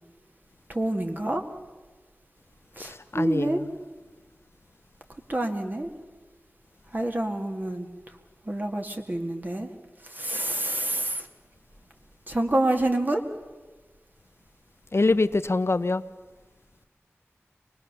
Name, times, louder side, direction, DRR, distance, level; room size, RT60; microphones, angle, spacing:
voice 1, 0.7-1.4 2.8-3.6 5.3-5.9 6.9-7.9 8.5-9.7 10.1-11.3 12.3-13.2, right 1 dB, 40° right, 2.0 m, -27 dB
voice 2, 2.8-3.7 14.9-16.0, left 3 dB, 60° left, 0.6 m, -24 dB
24.0 x 20.0 x 6.8 m
wide cardioid pair, 55°, 5 cm